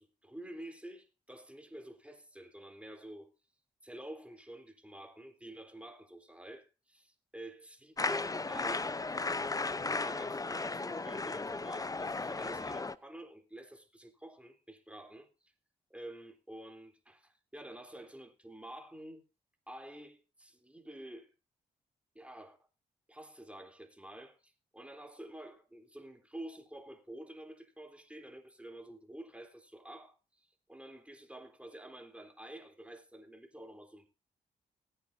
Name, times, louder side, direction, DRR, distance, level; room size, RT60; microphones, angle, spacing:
voice 1, 0.0-3.3 3.8-8.9 9.5-15.5 15.9-19.2 19.7-21.3 22.1-22.6 23.1-34.1, right 1 dB, 5° right, 3.5 m, -49 dB
sound 1, 8.0-12.9, left 3 dB, 20° left, 0.7 m, -35 dB
19.5 x 9.3 x 2.7 m
hypercardioid pair, 45°, 17 cm